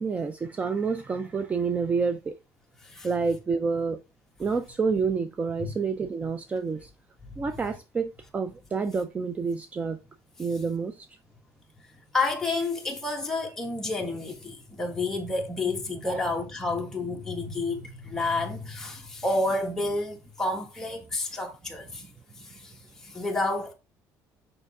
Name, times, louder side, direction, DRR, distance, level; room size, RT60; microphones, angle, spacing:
voice 1, 0.0-2.3 3.0-4.0 4.4-6.9 7.4-10.0 10.4-11.1 16.0-16.2, right 5 dB, 20° right, 0.4 m, -28 dB
voice 2, 12.1-22.0 22.6-22.7 23.0-23.7, left 2 dB, 5° left, 1.5 m, -30 dB
6.7 x 5.5 x 3.6 m
cardioid pair, 155°, 7 cm